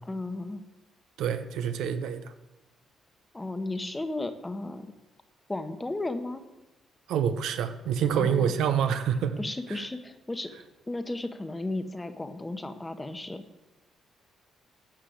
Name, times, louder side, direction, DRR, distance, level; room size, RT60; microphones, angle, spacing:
voice 1, 0.0-0.6 3.3-4.9 5.5-6.4 8.1-8.5 9.4-10.5 10.9-13.4, left 2 dB, 15° left, 9 dB, 1.1 m, -34 dB
voice 2, 1.2-2.3 7.1-9.4 9.7-9.8, right 8 dB, 85° right, 9 dB, 0.9 m, -27 dB
11.5 x 6.6 x 7.8 m, 1.0 s
cardioid pair, 90°, 0 cm